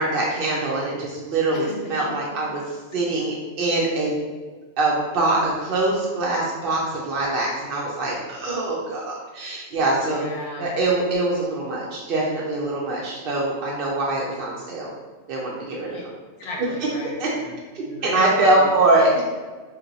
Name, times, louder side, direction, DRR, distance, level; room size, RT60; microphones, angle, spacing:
voice 1, 0.0-4.2 4.8-10.2 10.6-14.9 15.3-15.9 17.2-17.3 17.7-19.3, right 2 dB, 60° right, -4 dB, 0.7 m, -23 dB
voice 2, 1.5-2.1 2.4-2.5 2.9-3.0 10.0-10.7 15.9-16.0 16.4-17.6 17.9-18.7, left 2 dB, 65° left, -1 dB, 0.8 m, -36 dB
2.8 x 2.2 x 3.8 m, 1.3 s
omnidirectional pair, 1.2 m